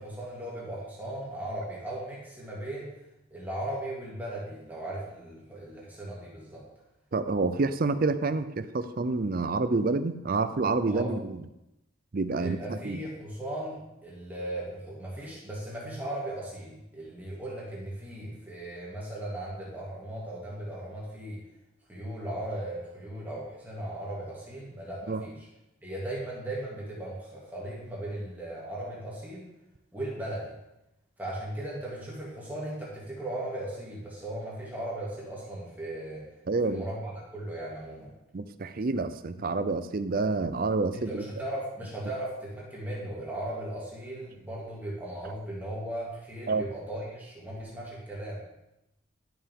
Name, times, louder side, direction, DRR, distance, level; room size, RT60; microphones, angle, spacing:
voice 1, 0.0-2.9 3.3-6.6 10.9-11.1 12.3-21.4 21.9-25.5 25.8-29.5 29.9-30.5 31.2-36.3 36.6-38.1 40.9-48.4, right 1 dB, 10° right, -6 dB, 2.4 m, -37 dB
voice 2, 7.1-11.4 12.1-13.0 25.1-25.2 36.5-36.8 38.3-41.2 46.5-46.6, right 3 dB, 45° right, 11 dB, 0.5 m, -28 dB
11.5 x 6.8 x 3.7 m, 0.90 s
head